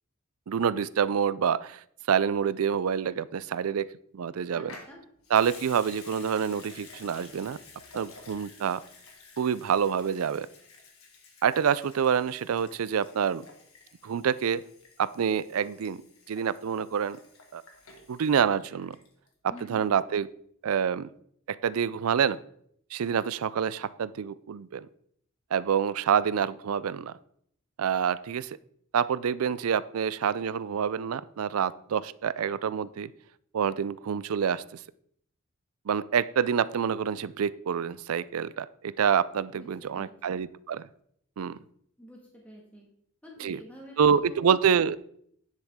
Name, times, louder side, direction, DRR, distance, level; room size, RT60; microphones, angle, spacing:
voice 1, 0.5-3.9 4.1-4.7 5.3-7.6 7.9-8.8 9.4-10.5 11.4-13.5 14.0-14.6 15.0-16.0 16.3-17.2 17.5-17.6 18.1-19.0 19.7-20.3 20.6-21.1 21.5-22.4 22.9-24.9 25.5-27.2 27.8-28.6 28.9-33.1 33.5-34.8 35.9-40.8 41.4-41.6 43.4-43.6 44.0-45.0, right 7 dB, 80° right, 18 dB, 0.4 m, -27 dB
voice 2, 4.5-5.0 19.5-19.9 39.5-39.7 39.9-40.4 42.0-42.9 43.2-44.4, equal, 5° left, -3 dB, 1.8 m, -48 dB
Water tap faucet / Sink (filling or washing) / Liquid, 4.6-19.3 19.6-19.7, left 4 dB, 85° left, 1.8 m, -52 dB
9.9 x 7.4 x 3.6 m, 0.67 s
head